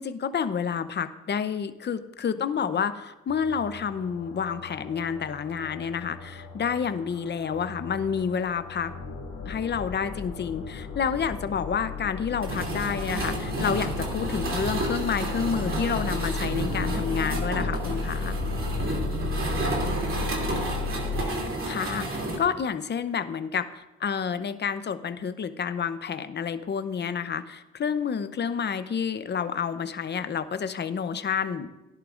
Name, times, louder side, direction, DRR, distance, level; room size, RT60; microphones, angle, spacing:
voice 1, 0.0-8.9 9.5-18.4 21.7-31.7, left 7 dB, 35° left, 11 dB, 0.7 m, -29 dB
sound 1, 3.3-21.2, left 4 dB, 65° left, 2.3 m, -35 dB
sound 2, 12.4-22.4, right 2 dB, 45° right, 2.9 m, -31 dB
voice 2, 19.1-21.0, right 7 dB, 60° right, 5 dB, 1.5 m, -43 dB
17.0 x 11.0 x 2.5 m, 1.0 s
cardioid pair, 90°, 30 cm